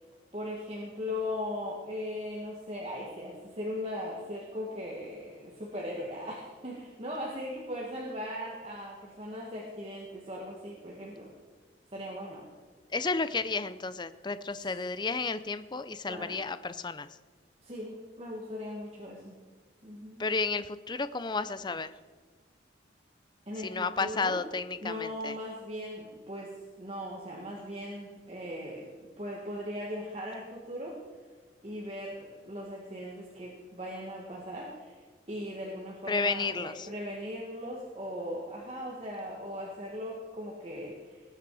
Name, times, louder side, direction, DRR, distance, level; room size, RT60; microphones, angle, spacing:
voice 1, 0.3-11.3 11.9-12.5 16.1-16.4 17.6-19.4 19.8-20.2 23.5-24.4 24.8-31.0 31.6-35.0 35.3-41.2, left 1 dB, 35° right, -3 dB, 2.0 m, -39 dB
voice 2, 12.9-17.1 20.2-21.9 23.6-25.3 36.1-36.9, left 4 dB, 25° left, 13 dB, 0.6 m, -32 dB
20.0 x 8.8 x 4.9 m, 1.4 s
head